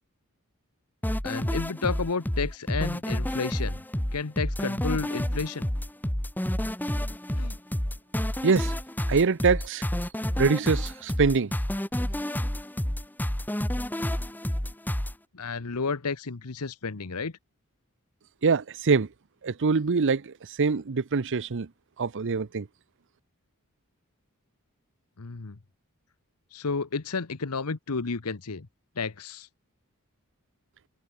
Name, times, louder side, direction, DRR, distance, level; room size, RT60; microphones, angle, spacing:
sound 1, 1.0-15.1, equal, 10° left, 1.1 m, -29 dB
voice 1, 1.2-3.8 4.1-5.7 7.3-7.6 15.3-17.3 25.2-25.6 26.5-28.7 29.0-29.5, left 4 dB, 85° left, 1.0 m, -31 dB
voice 2, 8.4-8.7 9.1-9.8 10.4-11.5 18.4-19.1 19.4-21.7 22.0-22.7, right 4 dB, 55° right, 0.7 m, -24 dB
head